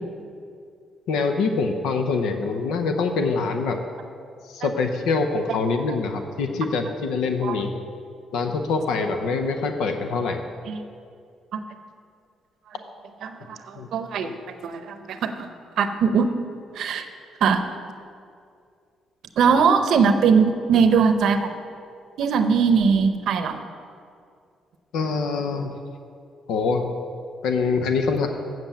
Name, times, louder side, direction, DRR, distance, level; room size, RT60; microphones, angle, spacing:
voice 1, 1.1-3.8 4.4-7.8 8.3-10.4 13.8-13.9 14.2-14.3 19.5-19.6 24.9-25.7 26.5-26.9 27.4-28.3, left 4 dB, 90° left, 5 dB, 0.7 m, -24 dB
voice 2, 13.2-14.3 14.6-15.5 15.8-16.3 16.8-17.1 17.4-17.6 19.4-21.6 22.2-23.6, right 6 dB, 75° right, 9 dB, 0.7 m, -20 dB
7.6 x 7.6 x 7.0 m, 2.3 s
cardioid pair, 90°, 0 cm